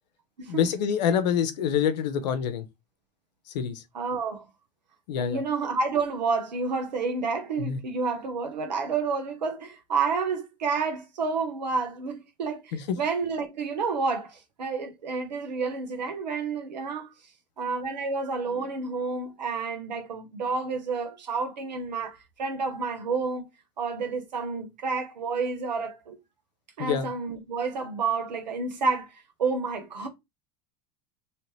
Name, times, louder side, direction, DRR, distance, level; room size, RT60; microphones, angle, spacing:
voice 1, 0.5-2.6 3.5-3.8 5.1-5.4 7.6-7.8 12.7-13.0 26.8-27.1, left 8 dB, 80° left, 0.7 m, -26 dB
voice 2, 3.9-4.4 5.2-17.1 17.6-23.5 23.8-26.2 26.8-29.1 29.4-30.1, right 4 dB, 90° right, 1.0 m, -30 dB
3.1 x 2.9 x 3.1 m
hypercardioid pair, 85°, 21 cm